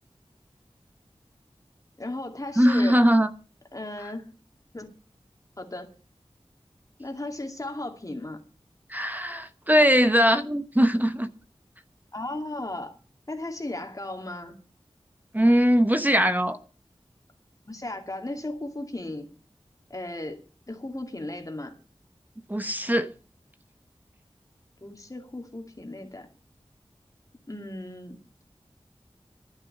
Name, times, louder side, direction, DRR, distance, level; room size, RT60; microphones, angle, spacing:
voice 1, 2.0-3.0 3.7-4.3 4.7-4.9 5.6-5.9 7.0-8.4 12.1-12.9 13.3-14.6 17.7-19.3 19.9-21.7 24.8-26.3 27.5-28.2, left 2 dB, 35° left, 2.3 m, -36 dB
voice 2, 2.6-3.3 8.9-11.3 15.3-16.6 22.5-23.1, equal, 15° right, 0.9 m, -21 dB
11.0 x 9.8 x 6.6 m
wide cardioid pair, 55°, 11 cm